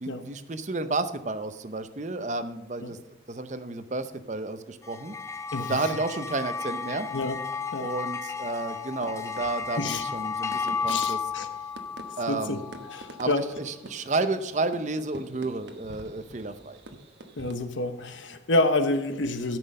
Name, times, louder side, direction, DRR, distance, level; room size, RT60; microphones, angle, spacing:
voice 1, 0.0-3.0 3.3-5.1 5.6-7.1 7.8-11.2 12.2-12.6 13.2-16.8, right 3 dB, 40° right, 11 dB, 0.6 m, -31 dB
sound 1, 4.9-13.5, left 5 dB, 15° left, 0.4 m, -33 dB
voice 2, 5.5-5.9 7.1-7.4 7.7-7.9 9.8-10.0 10.9-11.5 12.3-12.6 12.9-13.6 17.4-19.6, left 2 dB, 85° left, 8 dB, 1.0 m, -28 dB
sound 2, 8.3-17.5, right 1 dB, 70° right, 1.1 m, -47 dB
13.0 x 6.1 x 5.4 m, 0.97 s
head